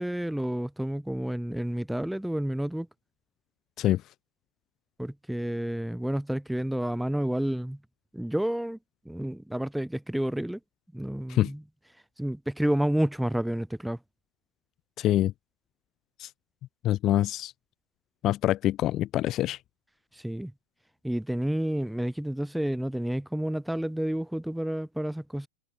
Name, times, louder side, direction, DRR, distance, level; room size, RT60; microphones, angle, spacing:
voice 1, 0.0-2.9 5.0-7.8 8.1-8.8 9.1-10.6 10.9-11.6 12.2-14.0 20.1-20.5 21.0-25.5, right 1 dB, ahead, 2.1 m, -30 dB
voice 2, 15.0-15.3 16.2-16.3 16.8-17.5 18.2-19.6, left 13 dB, 35° left, 0.8 m, -25 dB
figure-of-eight pair, 95°, 0 cm